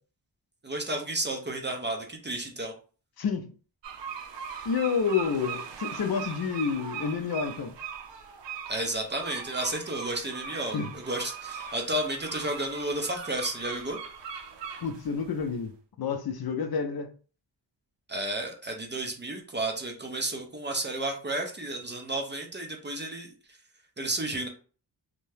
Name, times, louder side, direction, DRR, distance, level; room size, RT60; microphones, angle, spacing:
voice 1, 0.6-2.7 8.7-14.0 18.1-23.3 24.0-24.5, right 1 dB, 25° right, 0.5 m, -32 dB
voice 2, 3.2-3.5 4.7-7.7 10.7-10.9 14.8-15.7 16.0-17.1, left 6 dB, 55° left, 0.5 m, -29 dB
sound 1, 3.8-15.5, right 7 dB, 75° right, 0.6 m, -40 dB
2.7 x 2.2 x 3.2 m
wide cardioid pair, 145°, 44 cm